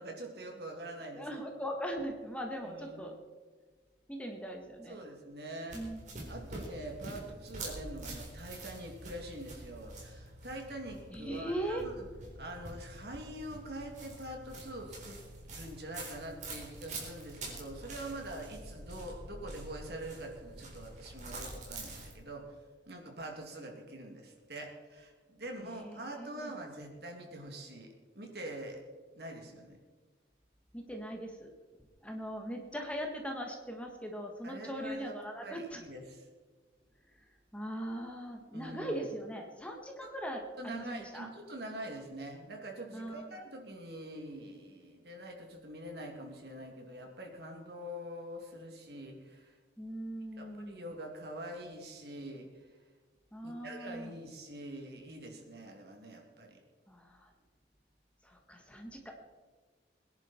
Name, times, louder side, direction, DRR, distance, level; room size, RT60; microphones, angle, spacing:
voice 1, 0.0-1.3 2.6-3.0 4.9-5.8 6.3-12.0 12.4-15.2 15.5-22.6 22.9-28.8 29.1-29.8 34.4-35.2 35.4-36.2 38.5-39.0 40.0-40.1 40.6-49.5 50.4-52.5 53.4-56.6, right 1 dB, 60° right, 2 dB, 2.7 m, -44 dB
voice 2, 1.1-3.2 4.1-5.0 5.7-6.2 11.1-11.8 25.8-26.5 30.7-31.5 32.0-35.8 37.5-41.3 42.9-43.3 49.8-50.8 53.3-54.1 56.9-57.3 58.2-59.3, equal, 5° left, 2 dB, 1.5 m, -40 dB
sound 1, 5.7-22.1, right 2 dB, 40° right, 4.1 m, -46 dB
22.0 x 10.5 x 4.4 m, 1.4 s
head